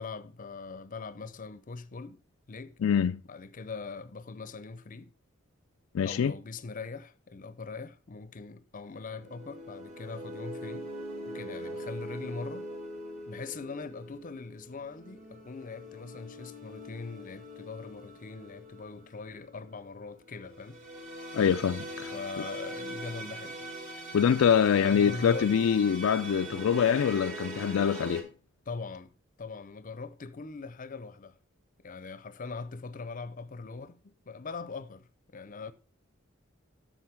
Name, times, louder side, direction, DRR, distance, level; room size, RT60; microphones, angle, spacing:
voice 1, 0.0-2.2 2.5-2.8 3.2-5.1 6.0-10.9 11.3-12.6 13.3-20.8 22.1-23.6 24.6-25.5 28.7-29.1 29.4-31.3 31.8-35.7, left 4 dB, 40° left, 0.6 m, -41 dB
voice 2, 2.8-3.2 5.9-6.3 21.3-22.1 22.4-22.5 24.1-28.3, left 7 dB, 80° left, 0.4 m, -25 dB
sound 1, 8.9-28.2, right 1 dB, 40° right, 2.7 m, -42 dB
7.9 x 6.4 x 4.6 m
head